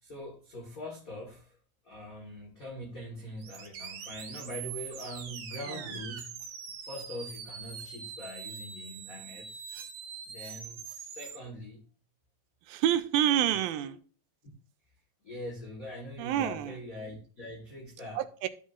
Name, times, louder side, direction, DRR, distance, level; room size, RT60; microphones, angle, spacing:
voice 1, 0.0-1.6 1.8-6.4 6.8-9.6 10.3-11.8 13.5-13.9 15.2-18.2, left 1 dB, 75° left, 0.7 m, -43 dB
sound 1, 3.4-11.4, right 7 dB, 70° right, 1.3 m, -43 dB
voice 2, 12.7-14.0 16.2-16.8 18.2-18.5, right 11 dB, 90° right, 2.4 m, -28 dB
12.5 x 5.5 x 2.4 m
omnidirectional pair, 4.1 m